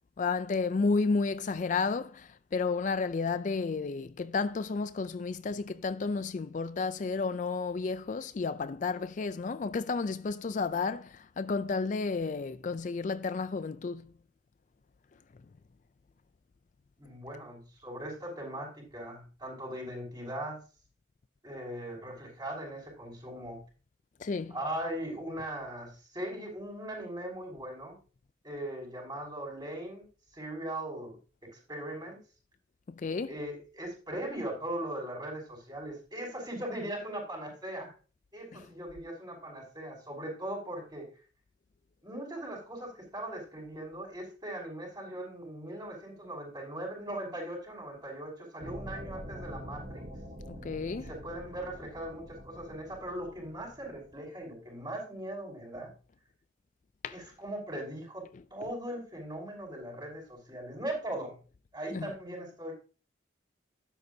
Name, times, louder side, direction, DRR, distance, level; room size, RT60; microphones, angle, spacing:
voice 1, 0.2-14.1 24.2-24.6 33.0-33.4 38.5-38.7 50.5-51.1 57.0-57.2 58.3-58.7 61.9-62.2, left 4 dB, 40° left, 0.4 m, -32 dB
voice 2, 17.0-20.6 21.4-23.6 24.5-27.9 28.4-30.0 30.3-32.2 33.3-37.9 38.3-41.1 42.0-50.1 50.9-55.9 57.1-61.3 61.7-62.7, right 1 dB, 20° right, 6.1 m, -39 dB
sound 1, 48.6-54.2, equal, 45° right, 3.9 m, -45 dB
12.5 x 10.5 x 2.7 m
head